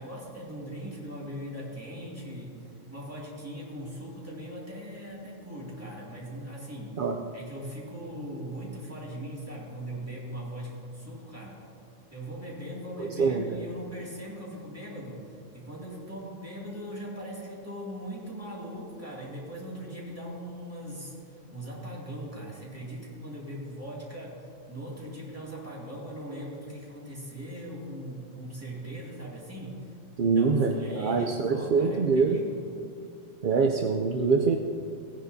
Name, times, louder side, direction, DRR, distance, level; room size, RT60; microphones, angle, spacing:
voice 1, 0.0-7.0 7.3-11.6 12.1-21.1 21.5-29.9 30.3-32.6, equal, 10° right, -6 dB, 2.3 m, -40 dB
voice 2, 13.0-13.6 30.2-32.4 33.4-34.6, right 4 dB, 60° right, 3 dB, 0.5 m, -24 dB
17.0 x 9.9 x 2.7 m, 2.4 s
omnidirectional pair, 1.4 m